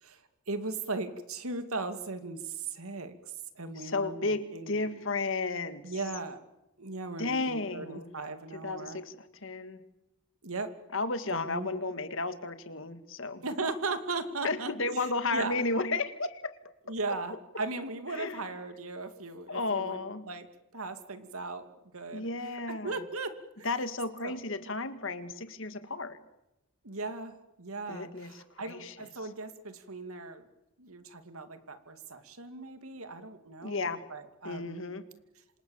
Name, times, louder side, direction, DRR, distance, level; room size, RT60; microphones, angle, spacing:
voice 1, 0.0-4.9 5.8-6.4 6.8-9.0 10.4-10.7 11.3-11.7 13.4-15.6 16.9-20.5 20.7-22.3 22.7-23.7 24.2-24.4 26.8-30.4 30.8-34.8, right 3 dB, 80° right, 9 dB, 2.5 m, -38 dB
voice 2, 3.8-5.8 7.2-8.1 8.5-9.8 10.9-13.4 14.4-16.5 18.1-18.4 19.5-20.3 22.1-23.0 23.6-26.2 27.9-29.1 33.6-34.0 34.4-35.0, left 3 dB, 60° left, 10 dB, 2.0 m, -33 dB
27.5 x 26.5 x 7.3 m, 0.92 s
head